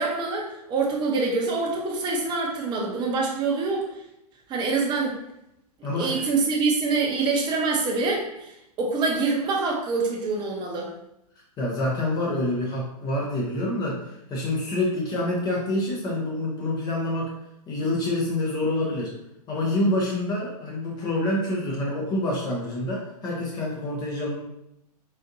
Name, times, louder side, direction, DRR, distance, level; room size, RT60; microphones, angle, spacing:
voice 1, 0.0-3.8 4.5-5.1 5.9-10.9, right 4 dB, 20° right, -1 dB, 0.8 m, -25 dB
voice 2, 5.8-6.3 11.6-17.3 17.7-19.1 19.5-24.3, left 1 dB, 20° left, -3 dB, 0.6 m, -27 dB
4.0 x 2.5 x 2.6 m, 0.81 s
hypercardioid pair, 120°, 20 cm